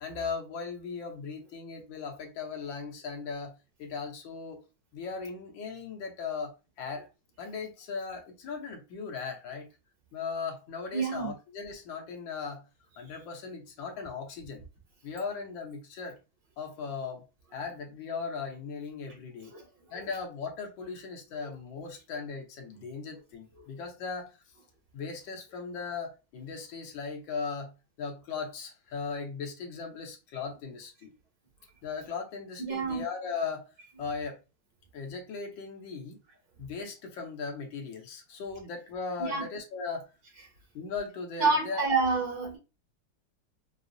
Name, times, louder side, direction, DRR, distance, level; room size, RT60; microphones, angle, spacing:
voice 1, 0.0-3.5 3.8-4.6 4.9-7.1 7.4-9.7 10.1-12.6 13.0-14.6 15.0-16.2 16.6-17.2 17.5-19.5 19.9-24.3 24.9-27.7 28.0-31.1 31.8-33.7 34.0-34.4 34.9-36.2 36.6-40.0 40.7-42.0, left 5 dB, 70° left, 1.4 m, -38 dB
voice 2, 10.9-11.3 19.5-19.6 32.6-33.0 39.2-39.4 41.4-42.6, right 4 dB, 60° right, 2.0 m, -28 dB
4.7 x 2.0 x 2.5 m
omnidirectional pair, 2.2 m